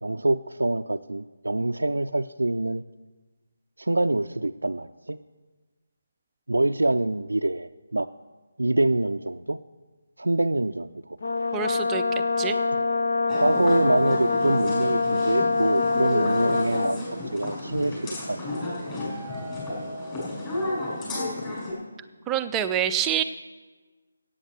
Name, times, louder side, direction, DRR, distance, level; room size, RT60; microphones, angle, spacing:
voice 1, 0.0-2.8 3.8-5.2 6.5-8.1 8.6-9.6 10.2-11.2 12.7-12.9 13.3-18.4, right 2 dB, 75° right, 6 dB, 0.4 m, -25 dB
Brass instrument, 11.2-17.0, left 3 dB, 55° left, 0.9 m, -25 dB
voice 2, 11.5-12.0 12.4-12.6 22.3-23.2, right 9 dB, 10° right, 9 dB, 0.5 m, -26 dB
sound 1, 13.3-21.7, left 1 dB, 20° left, 5.6 m, -32 dB
14.5 x 8.7 x 6.6 m, 1.3 s
figure-of-eight pair, 150°, 0 cm